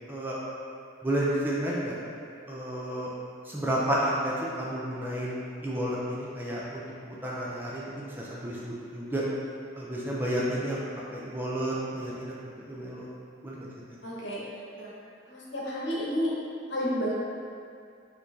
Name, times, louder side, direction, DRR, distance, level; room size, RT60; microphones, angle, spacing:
voice 1, 1.0-2.0 2.5-3.1 3.5-9.2 9.8-10.8 11.1-12.3 12.6-13.1 13.4-13.7, right 1 dB, 10° right, -6 dB, 0.4 m, -31 dB
voice 2, 14.0-14.4 14.7-14.9 15.3-16.3 16.7-17.1, equal, 70° left, -7 dB, 1.0 m, -31 dB
5.4 x 3.1 x 2.7 m, 2.4 s
head